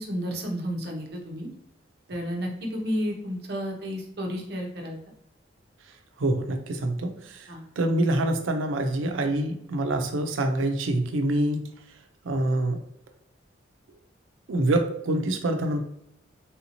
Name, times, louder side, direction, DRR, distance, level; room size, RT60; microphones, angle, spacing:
voice 1, 0.0-1.5 2.1-5.0 7.5-7.6, equal, 55° right, 1 dB, 0.8 m, -31 dB
voice 2, 6.2-7.4 7.8-11.6 12.2-12.8 14.5-15.8, right 1 dB, 90° right, 5 dB, 0.5 m, -25 dB
3.5 x 2.7 x 2.9 m, 0.75 s
head